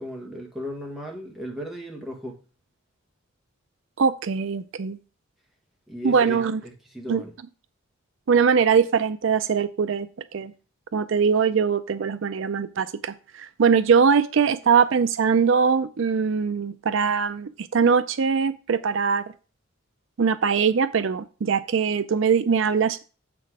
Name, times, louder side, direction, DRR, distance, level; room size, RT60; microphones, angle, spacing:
voice 1, 0.0-2.4 5.9-7.3, equal, ahead, -1 dB, 1.7 m, -36 dB
voice 2, 4.0-5.0 6.0-6.6 7.1-7.2 8.3-10.5 10.9-19.2 20.2-23.1, right 6 dB, 65° right, 13 dB, 0.4 m, -22 dB
7.5 x 6.1 x 4.7 m, 0.36 s
head